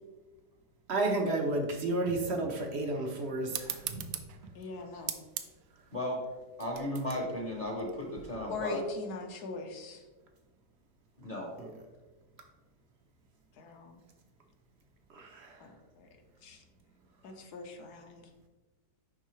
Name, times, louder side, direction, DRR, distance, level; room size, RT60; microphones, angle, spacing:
voice 1, 0.9-4.0 11.6-11.7 15.1-15.6, right 2 dB, 55° right, 3 dB, 0.8 m, -32 dB
sound 1, 3.5-8.6, right 10 dB, 75° right, 1.1 m, -42 dB
voice 2, 4.5-5.1 8.5-10.0 13.6-14.0 15.6-16.1 16.4-16.6 17.2-18.3, left 3 dB, 70° left, 4 dB, 1.3 m, -41 dB
voice 3, 6.6-8.8 11.2-11.5, left 1 dB, 35° left, 0 dB, 0.9 m, -35 dB
10.0 x 3.7 x 3.1 m, 1.2 s
omnidirectional pair, 1.8 m